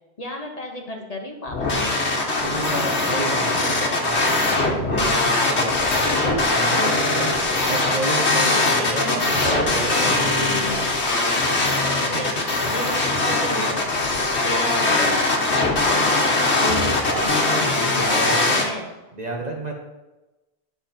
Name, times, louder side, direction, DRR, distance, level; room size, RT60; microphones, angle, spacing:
voice 1, 0.2-3.9 6.1-7.1 8.4-9.4 9.7-11.0 12.1-18.9, left 2 dB, 35° left, 2 dB, 1.2 m, -33 dB
sound 1, 1.5-18.6, left 2 dB, 85° left, 1.6 m, -21 dB
voice 2, 2.4-10.9 12.0-12.3 13.6-13.8 16.7-17.3 17.6-18.5 19.1-19.7, right 2 dB, 40° right, 0 dB, 1.4 m, -31 dB
9.6 x 5.9 x 4.4 m, 1.1 s
omnidirectional pair, 1.1 m